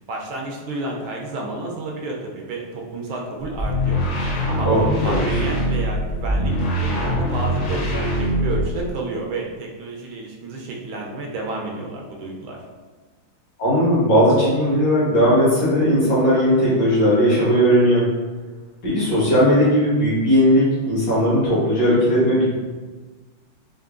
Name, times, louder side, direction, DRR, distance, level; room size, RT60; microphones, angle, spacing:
voice 1, 0.0-4.0 4.5-4.7 5.0-12.6, right 2 dB, 75° right, -1 dB, 1.4 m, -31 dB
sound 1, 3.5-8.9, equal, 80° left, 0.6 m, -23 dB
voice 2, 4.6-5.3 13.6-18.0 18.8-22.4, equal, 55° left, -8 dB, 2.0 m, -17 dB
4.5 x 2.6 x 2.5 m, 1.3 s
omnidirectional pair, 2.3 m